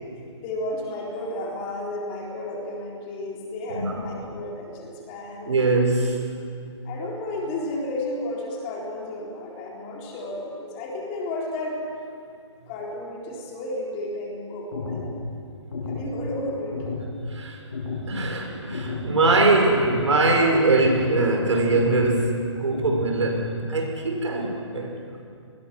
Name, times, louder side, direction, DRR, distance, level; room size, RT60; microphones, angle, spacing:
voice 1, 0.4-5.8 6.8-11.9 12.7-15.2 15.9-16.8 19.2-19.3, left 1 dB, 20° left, -2 dB, 3.8 m, -32 dB
voice 2, 3.7-4.0 5.5-6.1 17.3-17.6 18.1-24.9, right 2 dB, 70° right, 2 dB, 6.0 m, -22 dB
sound 1, 14.7-15.1 15.7-16.1 16.7-17.1 17.7-18.1 18.7-19.1 19.7-20.1 20.7-21.1 21.7-22.1 22.7-23.1, left 4 dB, 55° left, 6.3 m, -32 dB
27.0 x 21.0 x 6.2 m, 2.4 s
hypercardioid pair, 160°, 16 cm